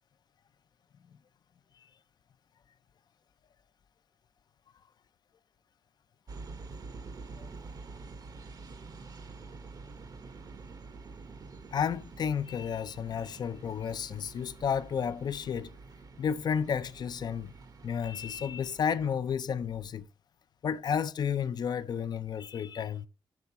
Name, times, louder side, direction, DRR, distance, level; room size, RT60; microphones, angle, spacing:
sound 1, 6.3-19.1, right 4 dB, 45° right, 0.8 m, -47 dB
voice 1, 11.7-15.8 16.2-17.5 17.8-20.1 20.6-23.1, left 7 dB, 55° left, 0.4 m, -32 dB
7.1 x 3.7 x 5.4 m
cardioid pair, 100°, 9 cm